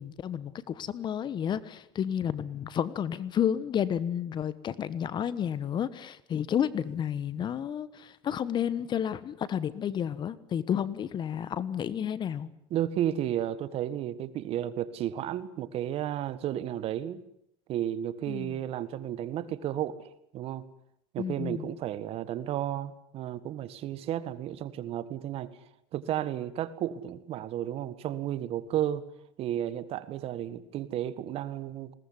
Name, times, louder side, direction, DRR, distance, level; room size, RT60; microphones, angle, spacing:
voice 1, 0.0-12.5 18.3-18.6 21.2-21.7, left 9 dB, 35° left, 17 dB, 1.3 m, -31 dB
voice 2, 12.7-17.2 17.7-20.7 21.1-25.5 25.9-29.0 29.4-31.9, right 11 dB, 50° right, 15 dB, 1.7 m, -33 dB
21.0 x 18.5 x 9.8 m, 0.75 s
supercardioid pair, 115°, 13 cm